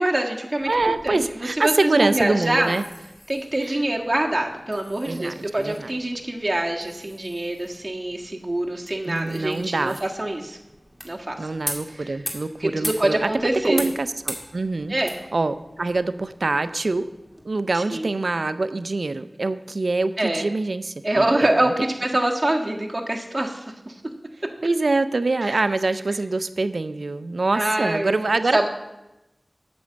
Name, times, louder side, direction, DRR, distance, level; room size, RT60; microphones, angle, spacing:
voice 1, 0.0-2.7 3.3-10.6 11.0-11.4 12.0-12.1 12.6-13.9 14.9-15.1 17.7-18.1 20.2-20.4 21.0-23.9 25.4-25.5 27.5-28.2 28.5-28.7, right 1 dB, 35° right, 0 dB, 1.5 m, -25 dB
sound 1, 0.6-17.4, equal, ahead, 1.9 m, -40 dB
voice 2, 0.7-2.8 3.6-3.8 5.0-5.9 9.0-10.0 11.4-13.3 13.6-14.9 15.3-17.1 17.4-21.9 24.6-28.7, right 3 dB, 80° right, 12 dB, 0.5 m, -25 dB
8.6 x 6.2 x 7.7 m, 0.95 s
wide cardioid pair, 45°, 0 cm